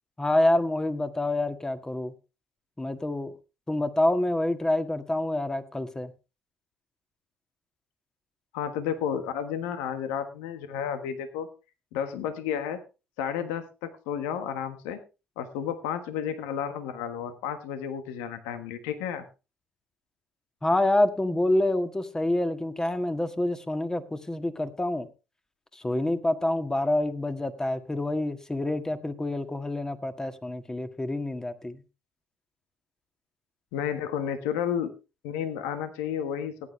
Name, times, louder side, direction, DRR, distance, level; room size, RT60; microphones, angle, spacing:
voice 1, 0.2-2.1 2.8-3.3 3.7-6.1 20.6-25.1 25.7-31.8, left 1 dB, 15° left, 8 dB, 1.7 m, -27 dB
voice 2, 8.5-11.5 11.9-12.8 13.2-15.0 15.4-19.2 33.7-34.9 35.2-36.5, left 8 dB, 80° left, 9 dB, 1.3 m, -32 dB
16.5 x 9.6 x 3.2 m, 0.30 s
hypercardioid pair, 60°, 4 cm